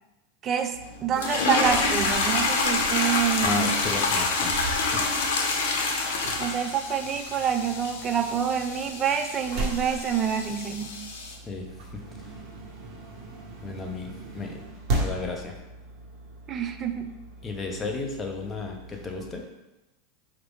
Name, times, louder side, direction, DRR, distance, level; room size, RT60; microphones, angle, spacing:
voice 1, 0.4-3.8 6.4-11.1 16.5-17.1, right 8 dB, 30° right, 7 dB, 0.4 m, -27 dB
sound 1, 0.7-19.4, right 2 dB, 50° right, 1.2 m, -38 dB
sound 2, 1.2-11.3, left 3 dB, 85° left, 0.6 m, -27 dB
voice 2, 3.4-4.6 4.9-5.0 11.4-11.7 11.9-12.3 13.6-14.6 14.9-15.5 17.4-19.4, left 4 dB, 20° left, 2 dB, 0.6 m, -34 dB
4.5 x 2.5 x 3.5 m, 1.0 s
supercardioid pair, 135°, 0 cm